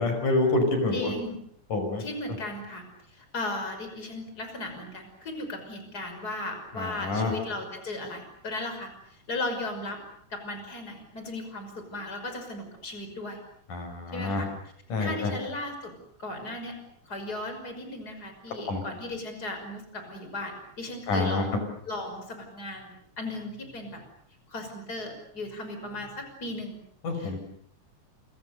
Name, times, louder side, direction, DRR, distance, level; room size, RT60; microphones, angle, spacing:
voice 1, 0.0-1.1 1.7-2.0 6.8-7.3 13.7-14.4 14.9-15.3 18.7-18.8 21.1-21.4 27.0-27.4, left 2 dB, 90° left, 6 dB, 7.0 m, -27 dB
voice 2, 0.9-1.4 2.0-2.8 3.1-8.9 9.3-10.0 10.3-13.4 14.1-14.5 15.0-15.9 16.2-16.8 17.1-21.5 21.9-24.0 24.5-26.8 27.1-27.3, left 2 dB, 30° left, 6 dB, 6.2 m, -36 dB
29.5 x 26.0 x 6.7 m, 0.66 s
omnidirectional pair, 3.5 m